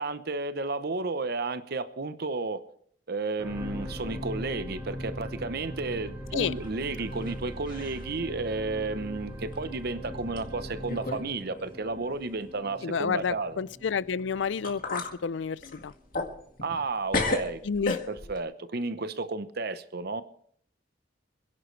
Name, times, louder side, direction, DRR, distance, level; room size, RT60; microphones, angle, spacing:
voice 1, 0.0-2.6 3.1-13.6 16.6-17.6 18.1-20.2, right 3 dB, 55° right, 0.9 m, -32 dB
sound 1, 3.4-15.8 16.4-16.5, equal, 10° right, 3.5 m, -40 dB
sound 2, 6.5-7.4 7.6-8.1 8.6-8.7 9.5-9.6 10.4-10.5 10.9-11.3 11.6-11.7 14.2-14.3 14.6-15.1 15.6-16.9 17.1-18.4, left 3 dB, 45° left, 2.1 m, -32 dB
voice 2, 12.8-15.9 17.6-18.0, left 6 dB, 70° left, 0.5 m, -30 dB
26.0 x 11.0 x 3.3 m
head